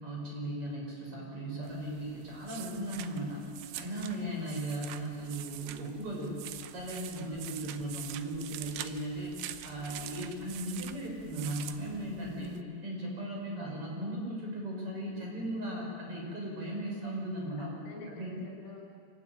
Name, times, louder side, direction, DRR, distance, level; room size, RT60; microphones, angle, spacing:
voice 1, 0.0-3.4 3.7-6.4 6.7-9.3 9.6-12.5 12.8-17.7 18.2-18.3, right 1 dB, 25° right, -2 dB, 6.6 m, -37 dB
sound 1, 1.6-12.6, right 12 dB, 85° right, 2.3 m, -45 dB
voice 2, 4.2-4.7 7.2-7.8 12.4-12.8 13.5-13.9 17.6-18.9, left 2 dB, 90° left, 0 dB, 8.5 m, -45 dB
25.5 x 16.0 x 9.6 m, 2.3 s
omnidirectional pair, 5.8 m